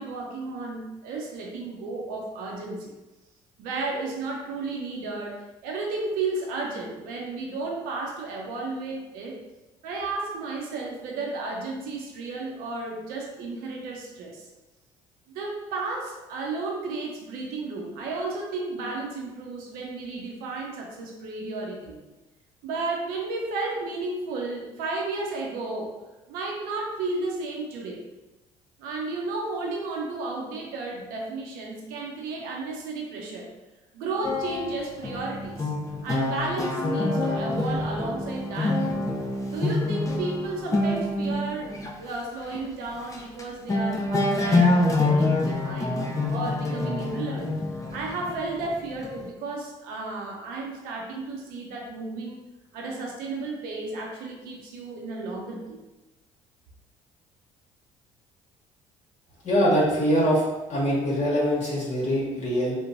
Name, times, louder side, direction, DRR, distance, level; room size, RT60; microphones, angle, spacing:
voice 1, 0.0-2.9 3.6-9.4 9.8-14.5 15.3-22.0 22.6-25.9 26.3-28.0 28.8-33.4 33.9-35.7 36.0-39.0 39.5-46.0 46.3-52.4 52.7-55.8, right 3 dB, 70° right, -1 dB, 0.5 m, -33 dB
sound 1, 34.2-41.9 42.5-42.7 43.0-43.4 43.7-49.3, left 2 dB, 20° left, 0.5 m, -26 dB
voice 2, 59.4-60.4 60.7-62.8, equal, 45° left, -6 dB, 1.0 m, -23 dB
2.9 x 2.1 x 2.5 m, 1.1 s
hypercardioid pair, 60°, 16 cm